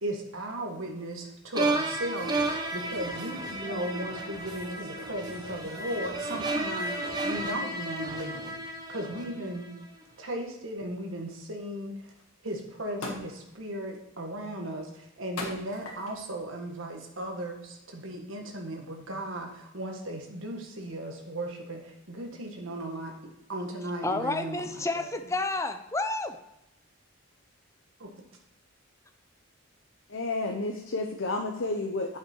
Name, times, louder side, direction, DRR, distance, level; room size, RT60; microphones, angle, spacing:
voice 1, 0.0-8.6 8.9-9.7 10.2-12.1 12.4-23.1 23.5-25.1 28.0-28.2, right 1 dB, 65° right, 2 dB, 1.6 m, -36 dB
sound 1, 1.5-9.7, right 2 dB, 20° right, 0.8 m, -33 dB
sound 2, 2.0-7.3, equal, 45° right, 3.3 m, -47 dB
sound 3, 12.1-12.2 13.0-13.4 14.0-14.3 15.4-16.2 17.0-17.2, left 2 dB, 80° left, 1.7 m, -39 dB
voice 2, 24.0-26.4, left 2 dB, 15° left, 7 dB, 0.5 m, -30 dB
voice 3, 30.1-32.2, left 2 dB, 65° left, 2 dB, 0.8 m, -31 dB
8.3 x 6.0 x 4.5 m, 0.86 s
head